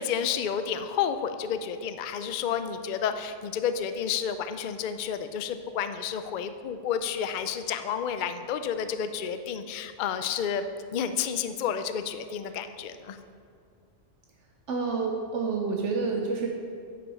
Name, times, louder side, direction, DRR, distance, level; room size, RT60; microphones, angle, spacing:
voice 1, 0.0-13.2, left 8 dB, 60° left, 9 dB, 0.5 m, -30 dB
voice 2, 14.7-16.5, right 4 dB, 75° right, 1 dB, 1.1 m, -28 dB
9.4 x 5.5 x 5.4 m, 2.3 s
omnidirectional pair, 1.3 m